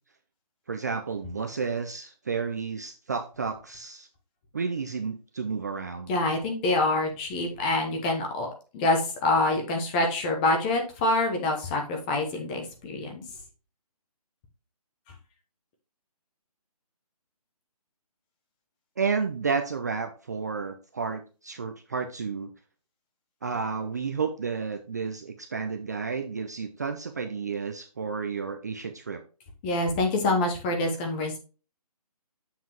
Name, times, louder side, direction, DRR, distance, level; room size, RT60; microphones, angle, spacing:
voice 1, 0.7-4.1 4.5-6.1 19.0-22.5 23.4-29.2, right 5 dB, 25° right, 6 dB, 0.4 m, -31 dB
voice 2, 6.1-8.5 8.7-13.2 29.6-31.4, left 2 dB, 15° left, 3 dB, 0.8 m, -26 dB
7.3 x 5.8 x 2.9 m, 0.34 s
hypercardioid pair, 160°, 20 cm